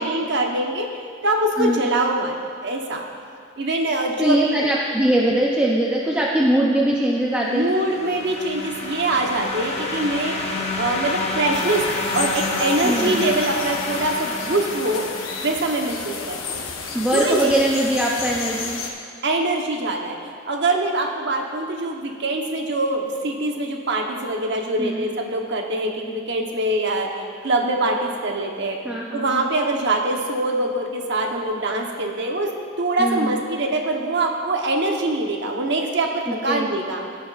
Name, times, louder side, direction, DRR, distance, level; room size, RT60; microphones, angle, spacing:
voice 1, 0.0-2.3 2.6-3.0 3.6-4.7 7.5-15.0 15.4-17.5 19.2-28.8 29.1-32.5 32.8-37.0, right 2 dB, 55° right, 2 dB, 1.0 m, -24 dB
voice 2, 1.6-1.9 4.2-7.7 12.8-13.3 16.9-18.8 24.8-25.1 28.8-29.5 33.0-33.4 36.3-36.7, right 1 dB, 5° right, -4 dB, 0.6 m, -21 dB
sound 1, 7.5-16.1, left 2 dB, 30° left, 0.8 m, -29 dB
sound 2, 11.5-18.9, left 5 dB, 90° left, 1.0 m, -32 dB
16.5 x 7.3 x 2.5 m, 2.4 s
head